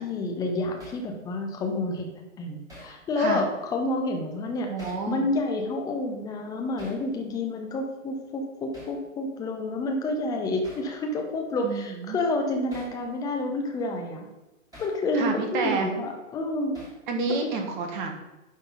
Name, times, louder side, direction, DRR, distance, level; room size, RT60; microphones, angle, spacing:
voice 1, 0.0-4.7 5.1-14.3 14.8-16.8 17.4-17.5, left 2 dB, 10° left, 3 dB, 0.7 m, -29 dB
Hammer, 0.8-1.1 2.7-3.0 4.8-5.1 6.8-7.0 8.7-9.0 10.6-10.9 12.7-13.0 14.7-15.0 16.7-17.1, equal, 10° right, 2.5 m, -46 dB
voice 2, 4.7-5.3 11.6-12.2 15.1-15.9 17.1-18.1, right 4 dB, 35° right, 4 dB, 1.3 m, -29 dB
11.0 x 3.8 x 4.0 m, 1.0 s
figure-of-eight pair, 115°, 40 cm